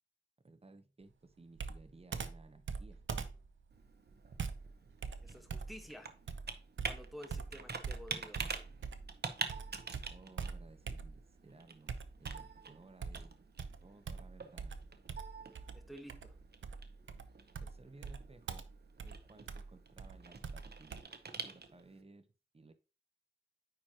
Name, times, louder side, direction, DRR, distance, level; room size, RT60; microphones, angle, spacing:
voice 1, 0.4-3.0 10.1-13.3 13.8-14.8 17.6-18.7 19.0-21.1 21.3-22.3 22.5-22.7, right 3 dB, 30° right, 0.8 m, -58 dB
Computer keyboard, 1.6-9.2 9.5-11.4 11.9-12.6 13.0-21.0, right 5 dB, 80° right, 0.7 m, -44 dB
Computer keyboard 2, 3.7-22.0, right 5 dB, 55° right, 0.9 m, -47 dB
voice 2, 5.2-6.1 6.8-8.4 15.7-16.3, equal, ahead, 1.3 m, -51 dB
9.5 x 4.5 x 2.9 m
wide cardioid pair, 85°, 19 cm